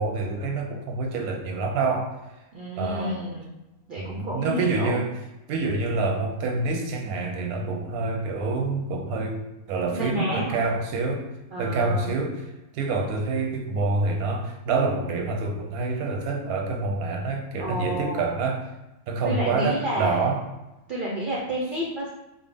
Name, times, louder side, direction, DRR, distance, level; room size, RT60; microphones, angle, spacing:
voice 1, 0.0-2.1 2.8-3.2 4.0-5.1 5.5-11.3 11.6-12.4 12.7-18.6 19.1-20.4, right 3 dB, 90° right, 2 dB, 1.1 m, -27 dB
voice 2, 2.5-3.5 3.9-5.0 9.9-10.6 11.5-12.1 17.6-18.3 19.2-20.4 20.9-22.1, equal, 65° right, -4 dB, 0.5 m, -30 dB
3.5 x 2.0 x 3.4 m, 0.99 s
omnidirectional pair, 1.5 m